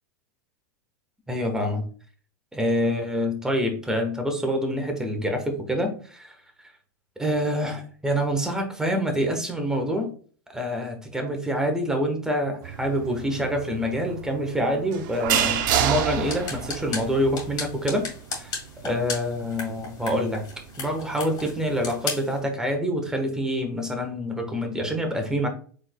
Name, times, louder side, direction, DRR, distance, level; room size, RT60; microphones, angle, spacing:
voice 1, 1.3-1.8 2.5-6.3 7.2-10.1 10.5-18.5 18.8-20.5 20.8-25.5, equal, 5° right, 3 dB, 1.2 m, -26 dB
sound 1, 12.6-22.0, right 9 dB, 65° right, 0.6 m, -30 dB
sound 2, 15.9-22.4, left 4 dB, 40° left, 2.0 m, -36 dB
4.7 x 3.7 x 2.2 m, 0.43 s
hypercardioid pair, 110°, 11 cm